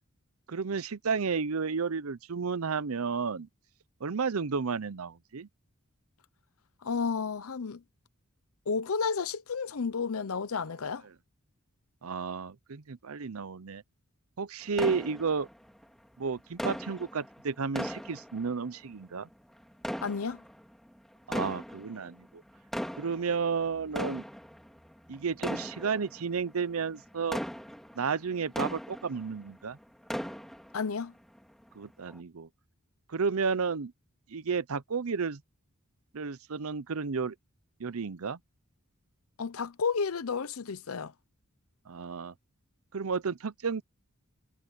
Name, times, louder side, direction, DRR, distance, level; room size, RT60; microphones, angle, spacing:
voice 1, 0.5-3.5 4.0-5.5 12.0-13.8 14.4-15.5 16.2-19.3 21.3-22.4 23.0-24.2 25.1-27.4 28.0-29.8 31.8-32.5 33.1-33.9 34.3-35.4 36.1-37.3 37.8-38.4 41.9-42.3 42.9-43.8, right 5 dB, 75° right, 0.7 m, -32 dB
voice 2, 6.8-7.8 8.7-11.1 20.0-20.4 30.7-31.1 39.4-41.1, left 5 dB, 75° left, 0.7 m, -32 dB
sound 1, 14.8-15.8 16.6-18.9 19.7-20.8 21.2-22.1 22.5-29.5 29.8-30.9 31.4-31.5 32.1-32.2, equal, ahead, 2.2 m, -38 dB
head